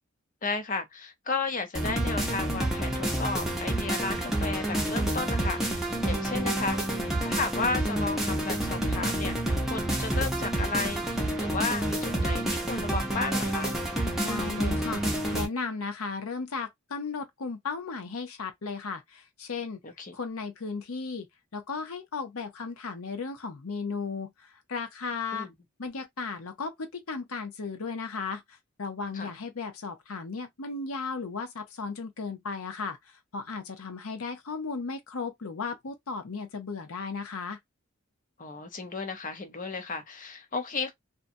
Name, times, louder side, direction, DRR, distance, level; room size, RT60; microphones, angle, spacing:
voice 1, 0.4-6.8 7.2-9.3 9.7-13.8 19.8-20.1 25.3-25.5 29.1-29.3 38.4-40.9, left 4 dB, 40° left, 0.7 m, -33 dB
sound 1, 1.7-15.5, right 1 dB, ahead, 0.7 m, -29 dB
voice 2, 14.2-15.1 15.3-19.8 20.1-21.3 21.5-25.5 25.8-28.4 28.8-37.6, left 4 dB, 90° left, 0.8 m, -35 dB
2.7 x 2.3 x 2.6 m
head